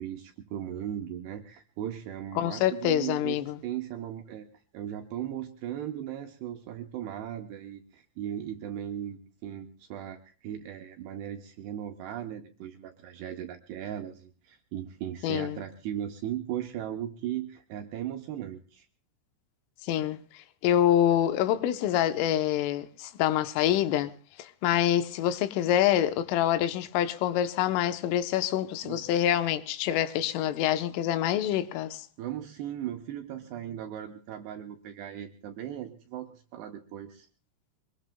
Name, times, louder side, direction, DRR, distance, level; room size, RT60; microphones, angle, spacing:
voice 1, 0.0-4.5 4.7-18.9 28.8-29.0 32.2-37.3, right 11 dB, 75° right, 2.4 m, -37 dB
voice 2, 2.4-3.6 15.2-15.6 19.8-20.2 20.6-24.1 24.4-32.1, left 11 dB, 80° left, 3.4 m, -26 dB
24.5 x 21.5 x 2.2 m
omnidirectional pair, 5.8 m